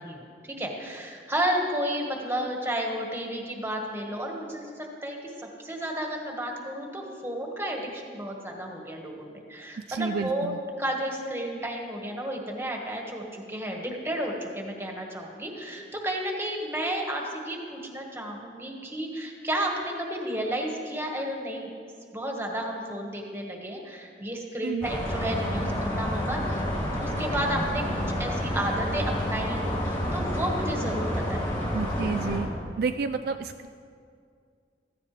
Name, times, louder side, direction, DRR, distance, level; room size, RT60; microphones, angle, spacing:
voice 1, 0.0-5.2 5.6-21.8 22.1-26.6 27.0-31.5, right 1 dB, 15° right, 0 dB, 1.6 m, -32 dB
voice 2, 9.9-10.6 24.6-24.9 31.7-32.5 32.8-33.7, right 5 dB, 60° right, 8 dB, 0.4 m, -30 dB
sound 1, 24.8-32.4, equal, 25° left, 3.8 m, -29 dB
16.0 x 14.5 x 3.3 m, 2.2 s
head